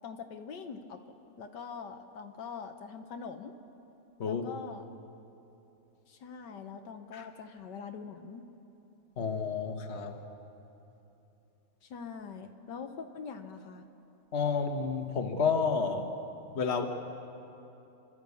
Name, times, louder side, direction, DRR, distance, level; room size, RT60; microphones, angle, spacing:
voice 1, 0.0-1.0 1.4-3.6 4.2-4.9 6.1-8.5 11.8-13.9, left 5 dB, 75° left, 6 dB, 1.6 m, -43 dB
voice 2, 9.2-10.2 14.3-16.1 16.5-16.9, left 5 dB, 40° left, 5 dB, 1.5 m, -30 dB
29.0 x 12.5 x 8.4 m, 3.0 s
omnidirectional pair, 1.9 m